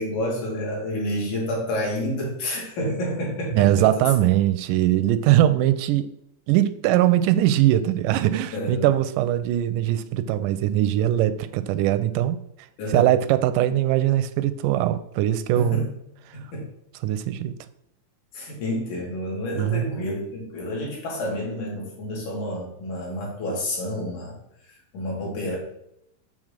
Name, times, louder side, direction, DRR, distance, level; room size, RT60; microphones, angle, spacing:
voice 1, 0.0-4.0 8.5-8.9 12.8-13.1 15.5-15.9 16.3-16.7 18.3-24.4 24.9-25.6, left 1 dB, 60° left, -3 dB, 3.6 m, -29 dB
voice 2, 3.5-6.1 6.5-12.4 12.9-15.8 17.0-17.5 19.6-19.9, right 13 dB, 80° right, 12 dB, 2.0 m, -21 dB
7.5 x 3.7 x 6.5 m, 0.77 s
omnidirectional pair, 4.0 m